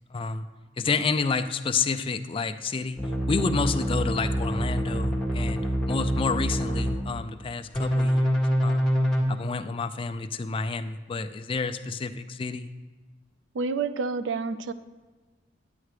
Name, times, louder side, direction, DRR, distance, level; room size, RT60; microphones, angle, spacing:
voice 1, 0.1-0.4 0.8-3.0 3.3-5.6 5.9-8.9 9.3-12.7, left 4 dB, 30° left, 9 dB, 0.3 m, -29 dB
sound 1, 3.0-7.0 7.7-9.2, equal, 5° left, 1.5 m, -26 dB
voice 2, 13.5-14.7, right 4 dB, 85° right, 13 dB, 0.4 m, -28 dB
9.6 x 9.0 x 3.2 m, 1.3 s
head